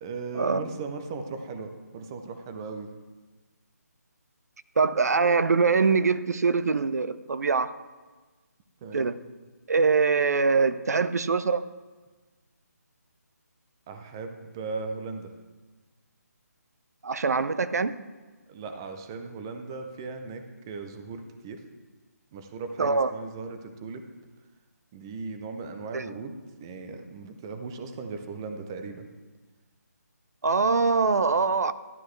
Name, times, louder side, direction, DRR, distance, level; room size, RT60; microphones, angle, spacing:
voice 1, 0.0-2.9 8.8-9.1 13.9-15.3 18.5-21.6 22.3-24.0 24.9-29.1, right 4 dB, 15° right, 0.5 m, -37 dB
voice 2, 4.8-7.8 8.9-9.2 9.7-11.6 17.0-18.0 22.8-23.1 25.9-26.0 30.4-31.7, right 4 dB, 65° right, 0.6 m, -23 dB
12.0 x 9.8 x 3.2 m
hypercardioid pair, 170°, 9 cm